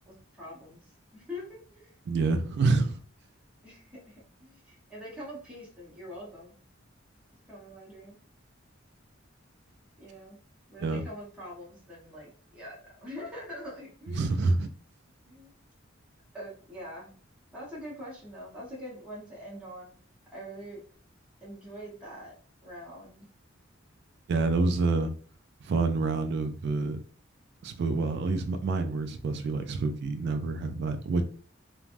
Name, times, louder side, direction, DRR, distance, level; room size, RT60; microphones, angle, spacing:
voice 1, 0.1-2.0 3.6-6.5 7.5-8.2 10.0-10.4 10.7-14.3 15.2-15.5 16.3-17.1 17.5-20.0 20.3-20.8 21.4-22.3 22.6-23.3, equal, 5° right, 0.9 m, -44 dB
voice 2, 2.1-3.0 10.8-11.0 14.1-14.7 24.3-25.1 25.6-27.0 27.6-31.2, right 3 dB, 60° right, 0.3 m, -27 dB
3.2 x 2.2 x 2.4 m
head